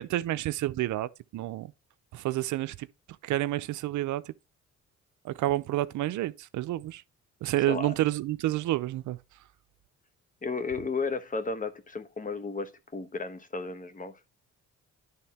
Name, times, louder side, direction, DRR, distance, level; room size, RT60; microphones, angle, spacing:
voice 1, 0.0-1.7 2.1-2.9 3.2-4.2 5.2-7.0 7.4-9.2, right 15 dB, 75° right, 0.5 m, -29 dB
voice 2, 10.4-14.1, left 4 dB, 25° left, 1.0 m, -33 dB
10.5 x 3.5 x 4.3 m
cardioid pair, 90°, 30 cm